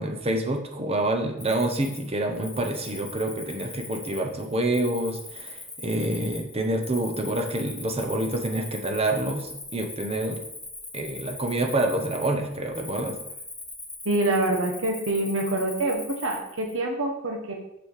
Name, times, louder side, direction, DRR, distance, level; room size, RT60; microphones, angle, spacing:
voice 1, 0.0-10.5 10.9-13.2, right 1 dB, 30° right, 4 dB, 1.0 m, -27 dB
Cricket, 1.4-16.7, left 2 dB, 5° left, 1.3 m, -41 dB
voice 2, 14.0-17.5, right 2 dB, 80° right, 1 dB, 1.4 m, -26 dB
6.2 x 6.1 x 4.9 m, 0.82 s
head